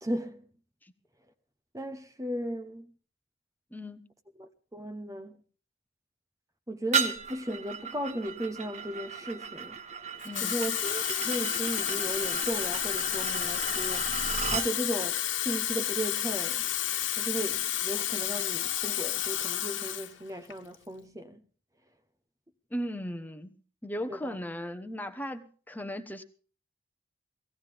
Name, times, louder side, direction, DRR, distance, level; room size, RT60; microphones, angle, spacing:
voice 1, 0.0-0.5 1.7-2.9 4.4-5.3 6.7-9.8 10.4-14.2 14.5-16.7 17.2-21.4 24.1-24.4, equal, 15° right, 0.9 m, -36 dB
voice 2, 3.7-4.0 10.2-10.6 22.7-23.6 23.8-26.2, equal, 10° left, 1.1 m, -37 dB
sound 1, 6.9-14.7, right 6 dB, 35° right, 1.5 m, -35 dB
Water tap faucet / Fill (with liquid), 10.2-20.1 20.5-20.8, left 12 dB, 80° left, 1.6 m, -31 dB
18.5 x 16.0 x 3.5 m
head